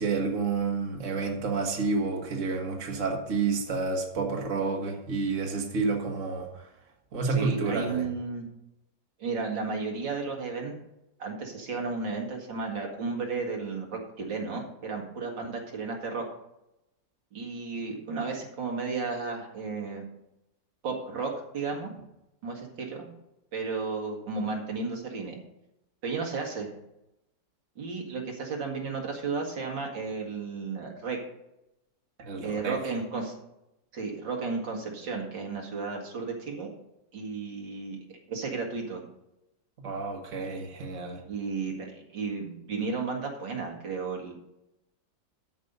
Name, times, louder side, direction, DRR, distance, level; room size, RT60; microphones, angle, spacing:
voice 1, 0.0-6.7 7.1-8.1 32.2-32.8 39.8-41.2, right 4 dB, 45° right, 1 dB, 1.9 m, -29 dB
voice 2, 7.3-8.5 9.2-10.7 11.2-16.2 17.3-20.0 20.8-21.9 22.4-23.1 23.5-25.4 26.0-26.7 27.8-31.2 32.4-33.4 33.9-36.7 37.1-39.0 41.3-44.3, right 4 dB, 75° right, 1 dB, 2.6 m, -33 dB
13.0 x 5.5 x 5.4 m, 0.86 s
omnidirectional pair, 2.0 m